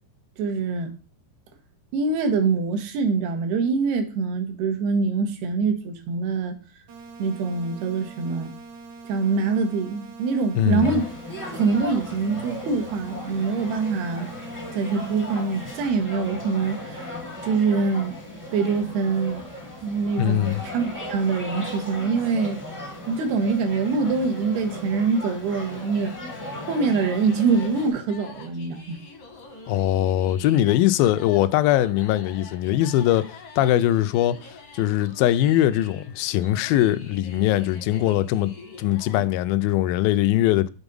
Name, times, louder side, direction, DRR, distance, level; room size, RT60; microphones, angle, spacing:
voice 1, 0.4-0.9 1.9-6.6 7.2-8.5 9.1-11.1 11.5-14.3 14.7-17.2 17.4-18.2 18.5-19.4 19.8-22.6 23.1-26.2 26.7-29.0, right 4 dB, 80° right, 3.1 m, -24 dB
sound 1, 6.9-15.9, right 4 dB, 60° right, 2.2 m, -43 dB
voice 2, 10.6-11.0 20.2-20.6 29.7-33.3 33.6-34.4 34.7-38.5 38.8-40.7, left 13 dB, 80° left, 2.1 m, -21 dB
sound 2, 10.8-27.9, left 2 dB, 30° left, 0.3 m, -37 dB
sound 3, 25.6-39.2, left 4 dB, 65° left, 1.4 m, -45 dB
7.2 x 3.9 x 5.2 m
omnidirectional pair, 4.6 m